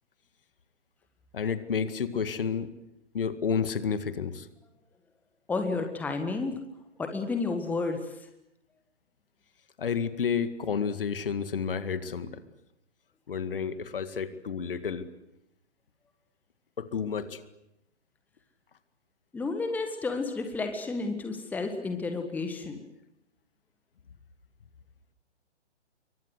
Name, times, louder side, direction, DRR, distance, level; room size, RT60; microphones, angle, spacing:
voice 1, 1.3-2.7 3.1-4.5 9.8-12.4 13.3-15.1 16.8-17.4, left 6 dB, 50° left, 12 dB, 2.1 m, -30 dB
voice 2, 5.5-6.6 7.0-8.1 19.3-22.8, left 3 dB, 5° left, 6 dB, 1.6 m, -31 dB
27.5 x 23.5 x 8.1 m, 0.87 s
figure-of-eight pair, 130°, 34 cm